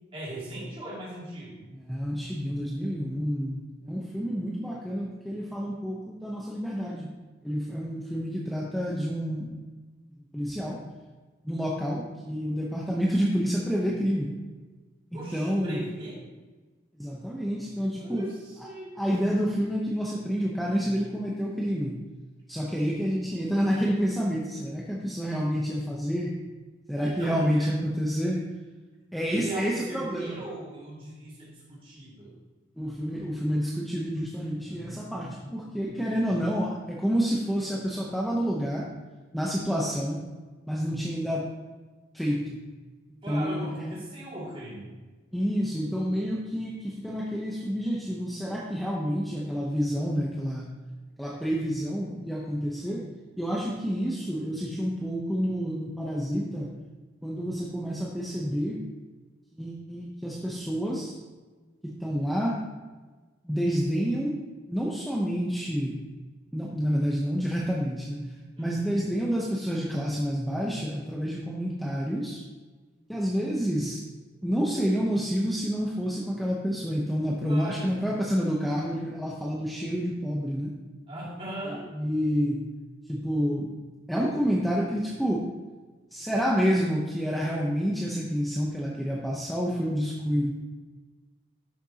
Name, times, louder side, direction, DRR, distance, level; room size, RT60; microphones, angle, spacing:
voice 1, 0.1-1.6 15.1-16.2 18.0-19.0 27.0-27.8 29.2-32.3 34.7-36.4 43.2-45.0 68.5-69.0 77.4-78.0 81.1-81.9, right 1 dB, 30° right, -5 dB, 2.3 m, -39 dB
voice 2, 1.9-7.1 7.4-9.5 10.3-10.8 11.4-14.3 15.1-15.8 17.0-18.3 18.6-18.7 19.0-22.0 22.5-26.3 26.9-28.4 29.1-30.4 32.8-38.9 39.3-40.2 40.7-41.5 42.1-42.6 43.3-43.7 45.3-50.8 51.2-53.0 53.4-56.7 57.2-58.8 59.5-61.1 61.8-62.6 63.4-64.4 64.7-66.0 66.5-68.2 68.6-72.4 73.1-74.0 74.4-80.7 81.9-82.7 83.1-83.7 84.1-85.5 86.1-90.5, equal, ahead, -4 dB, 0.7 m, -28 dB
11.0 x 6.6 x 2.9 m, 1.3 s
head